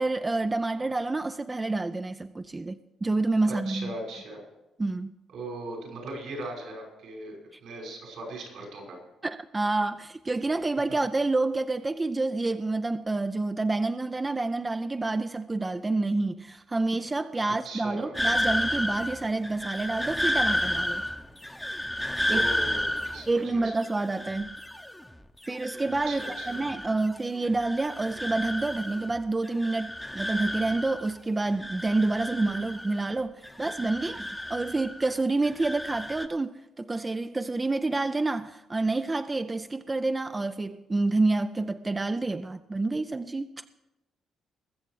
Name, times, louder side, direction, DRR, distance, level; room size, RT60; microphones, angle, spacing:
voice 1, 0.0-3.9 4.8-5.1 9.2-21.0 22.3-22.4 23.3-24.5 25.5-43.6, right 2 dB, 20° right, 0.4 m, -28 dB
voice 2, 3.5-4.4 5.3-9.0 17.4-18.1 22.3-23.8 26.0-26.6, right 2 dB, 75° right, 5.6 m, -39 dB
sound 1, 18.1-25.1 25.4-27.1 27.4-29.2 29.4-31.1 31.4-33.1 33.4-35.1 35.4-36.3, left 1 dB, 5° left, 0.8 m, -32 dB
21.0 x 7.3 x 4.8 m
cardioid pair, 90°, 0 cm